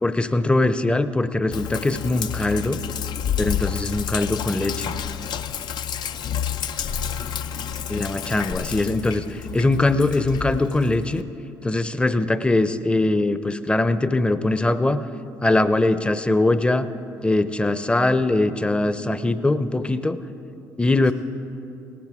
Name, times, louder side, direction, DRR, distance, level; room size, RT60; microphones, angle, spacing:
voice 1, 0.0-2.8 3.4-5.0 7.9-11.2 11.6-15.0 15.4-16.9 17.2-20.2 20.8-21.1, left 2 dB, 10° left, 12 dB, 0.6 m, -21 dB
Sink (filling or washing), 1.5-11.2, left 8 dB, 60° left, 0.5 m, -30 dB
voice 2, 6.6-7.2 7.5-8.2 21.0-21.1, left 2 dB, 75° left, -1 dB, 3.3 m, -45 dB
18.0 x 13.5 x 3.6 m, 2.8 s
hypercardioid pair, 60°, 8 cm